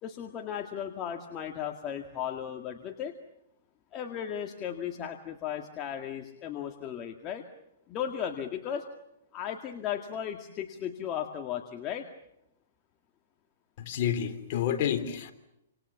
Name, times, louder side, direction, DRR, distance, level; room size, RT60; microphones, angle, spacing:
voice 1, 0.0-3.1 3.9-7.5 7.9-8.8 9.3-12.1, left 9 dB, 30° left, 4 dB, 2.0 m, -36 dB
voice 2, 13.9-15.3, left 9 dB, 45° left, 6 dB, 3.6 m, -29 dB
28.5 x 27.0 x 7.2 m, 0.84 s
hypercardioid pair, 140°, 0 cm